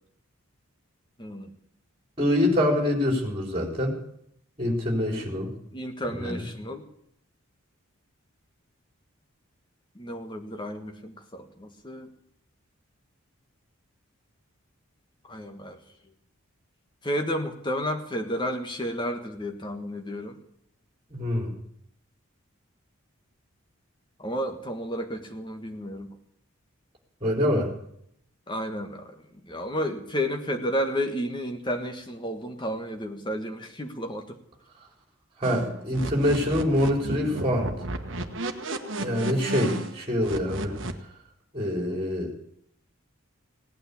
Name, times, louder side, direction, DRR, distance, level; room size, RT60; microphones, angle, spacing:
voice 1, 1.2-1.5 5.0-5.3 5.7-6.8 9.9-12.1 15.3-15.8 17.0-20.4 24.2-26.1 28.5-29.1 29.5-34.4 39.6-39.8, equal, 20° left, 5 dB, 1.5 m, -32 dB
voice 2, 2.2-4.0 4.6-5.5 6.1-6.4 21.1-21.6 27.2-27.7 35.4-37.7 39.0-40.7 41.5-42.3, left 1 dB, 25° right, 2 dB, 4.0 m, -25 dB
sound 1, 35.4-40.9, right 1 dB, 60° right, 1.3 m, -33 dB
17.5 x 9.1 x 8.4 m, 0.71 s
head